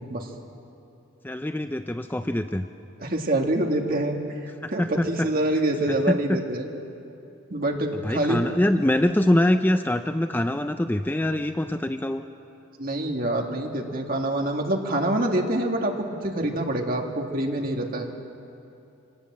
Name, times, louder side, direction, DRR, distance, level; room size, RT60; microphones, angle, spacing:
voice 1, 1.2-2.7 4.6-5.3 5.9-6.4 7.9-12.2, left 1 dB, 10° left, 8 dB, 0.4 m, -24 dB
voice 2, 3.0-6.7 7.5-8.4 12.8-18.1, right 1 dB, 45° right, 2 dB, 2.1 m, -26 dB
25.5 x 18.5 x 7.5 m, 2.7 s
head